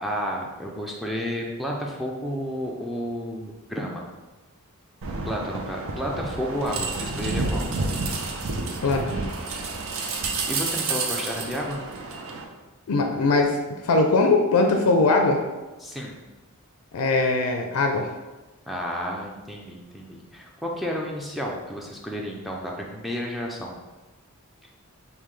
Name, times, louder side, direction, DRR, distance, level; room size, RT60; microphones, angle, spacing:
voice 1, 0.0-4.1 5.2-7.6 10.5-11.8 15.8-16.2 18.7-23.7, equal, ahead, -2 dB, 0.4 m, -31 dB
sound 1, 5.0-12.4, right 3 dB, 60° right, 0.5 m, -30 dB
voice 2, 8.8-9.2 12.9-13.6 13.8-15.4 16.9-18.1, left 3 dB, 75° left, 3 dB, 0.4 m, -21 dB
5.5 x 2.2 x 3.2 m, 1.2 s
head